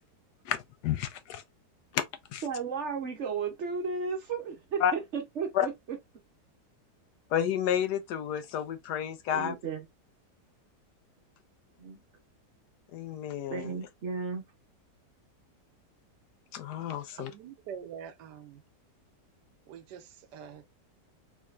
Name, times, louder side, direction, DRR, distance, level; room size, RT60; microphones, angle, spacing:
voice 1, 0.8-1.4 1.9-2.0 2.3-2.4 4.8-4.9 5.5-5.7 7.3-9.5 12.9-13.7 16.5-17.3, left 10 dB, 75° left, 1.1 m, -30 dB
voice 2, 2.4-6.0 9.3-9.9 11.8-12.0 13.5-14.4, right 5 dB, 55° right, 0.9 m, -34 dB
voice 3, 17.2-18.6 19.7-20.6, right 8 dB, 75° right, 1.2 m, -45 dB
3.6 x 3.2 x 2.4 m
omnidirectional pair, 1.9 m